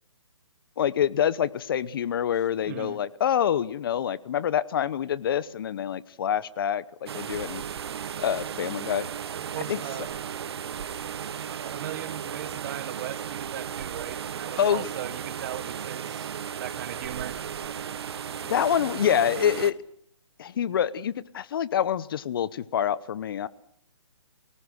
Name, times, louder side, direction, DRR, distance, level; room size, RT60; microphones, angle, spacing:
voice 1, 0.8-7.6 8.2-9.1 9.7-9.8 14.6-14.9 18.5-19.8 20.4-23.5, left 9 dB, 45° left, 19 dB, 0.9 m, -26 dB
voice 2, 2.7-3.0 9.3-10.2 11.6-16.3 16.6-17.4, right 11 dB, 35° right, 15 dB, 1.3 m, -38 dB
sound 1, 7.1-19.7, right 8 dB, 55° right, 1.2 m, -35 dB
27.0 x 18.0 x 6.5 m, 0.66 s
hypercardioid pair, 145°, 16 cm